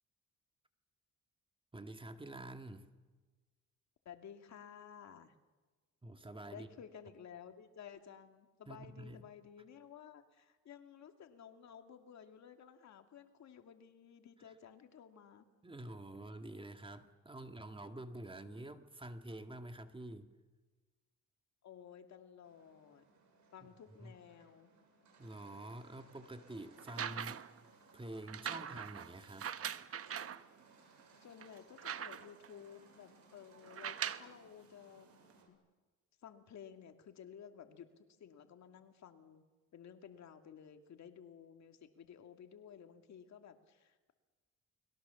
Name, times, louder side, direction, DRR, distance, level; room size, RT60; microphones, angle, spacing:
voice 1, 1.7-2.9 6.0-6.7 8.7-9.3 15.6-20.3 23.6-23.7 24.0-24.1 25.2-27.4 27.9-29.5, right 1 dB, 15° right, 7 dB, 2.0 m, -48 dB
voice 2, 4.0-5.3 6.5-15.5 21.6-23.1 23.5-24.7 31.2-35.1 35.5-35.6 36.2-39.5 39.7-44.1, left 8 dB, 65° left, 6 dB, 2.4 m, -55 dB
sound 1, 22.4-35.5, right 3 dB, 70° right, 6.7 m, -65 dB
sound 2, 26.8-27.6 28.3-30.4 31.0-31.1 31.4-32.5 33.6-34.4 35.3-35.4, right 8 dB, 50° right, 1.1 m, -42 dB
29.5 x 21.5 x 7.1 m, 1.3 s
cardioid pair, 90°, 30 cm